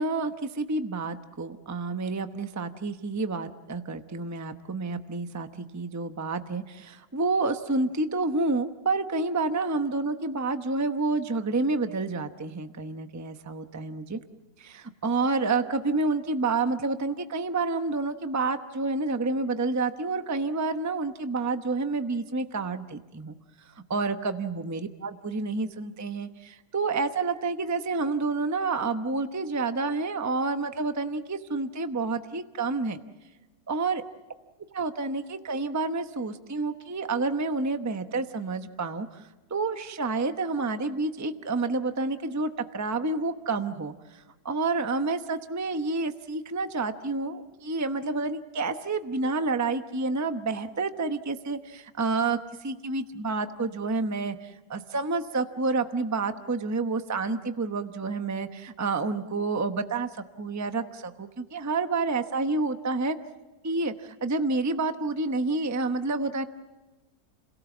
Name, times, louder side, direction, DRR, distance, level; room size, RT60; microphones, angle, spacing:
voice 1, 0.0-14.2 14.6-23.4 23.9-33.0 33.7-34.0 34.7-39.2 39.5-60.1 60.4-63.2 63.6-66.4, right 3 dB, 15° right, 8 dB, 0.6 m, -29 dB
30.0 x 18.0 x 7.2 m, 1.1 s
omnidirectional pair, 1.8 m